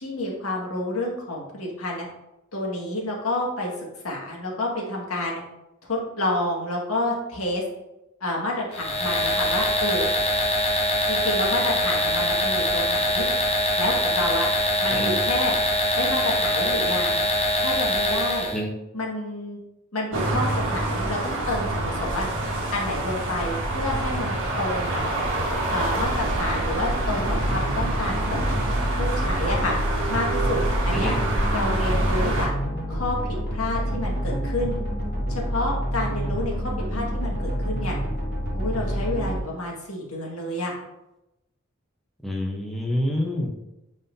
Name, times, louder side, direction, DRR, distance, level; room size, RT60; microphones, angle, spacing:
voice 1, 0.0-2.1 2.5-5.4 5.9-7.6 8.2-10.1 11.1-13.3 13.8-14.5 14.8-15.6 16.0-17.2 17.6-18.5 18.9-19.6 19.9-22.3 22.7-24.9 25.7-28.5 29.0-29.8 30.1-31.1 31.5-32.5 32.9-33.2 33.5-34.8 35.3-38.0 38.5-40.7, left 1 dB, 85° left, -2 dB, 1.8 m, -29 dB
sound 1, 8.7-18.6, left 1 dB, 30° left, 1.0 m, -23 dB
sound 2, 20.1-32.5, right 2 dB, 65° right, 1.7 m, -27 dB
sound 3, 27.0-39.4, equal, 55° left, 2.0 m, -28 dB
voice 2, 42.2-43.5, equal, ahead, -1 dB, 0.9 m, -27 dB
9.1 x 4.2 x 2.7 m, 0.91 s
head